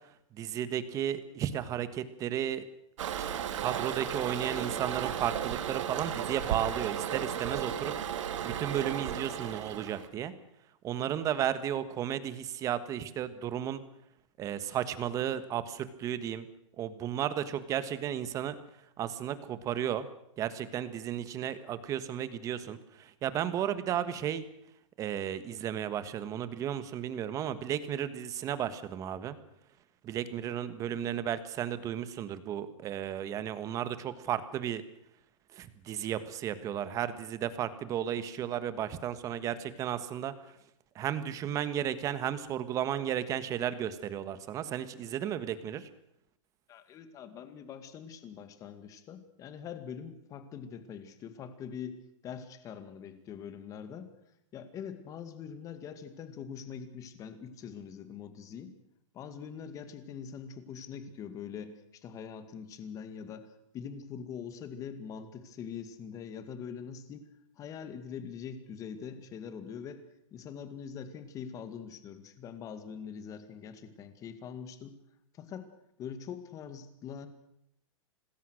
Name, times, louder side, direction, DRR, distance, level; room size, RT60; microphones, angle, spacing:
voice 1, 0.3-2.6 3.2-7.9 8.4-10.3 10.8-13.8 14.4-16.5 16.8-18.5 19.0-20.1 20.4-24.4 25.0-29.4 30.0-34.8 35.5-40.3 40.9-45.9, right 10 dB, 20° right, 13 dB, 1.4 m, -34 dB
Toilet flush, 3.0-10.1, right 9 dB, 70° right, 2.4 m, -35 dB
voice 2, 46.7-54.1 54.5-58.7 59.1-67.3 67.6-70.0 70.3-75.0 75.3-75.7 76.0-77.3, left 7 dB, 20° left, 10 dB, 2.2 m, -43 dB
26.5 x 20.5 x 6.5 m, 0.77 s
supercardioid pair, 165°, 17 cm